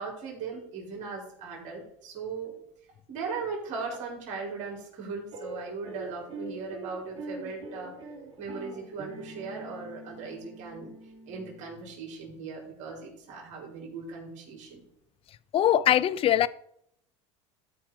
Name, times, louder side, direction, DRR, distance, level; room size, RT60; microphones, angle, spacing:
voice 1, 0.0-2.5 3.1-8.0 8.4-10.9 11.3-14.8, right 4 dB, 55° right, 3.9 m, -38 dB
sound 1, 5.3-11.8, right 3 dB, 35° right, 2.8 m, -44 dB
voice 2, 15.5-16.5, left 11 dB, 40° left, 0.5 m, -22 dB
13.0 x 4.5 x 4.8 m
supercardioid pair, 95°, 15 cm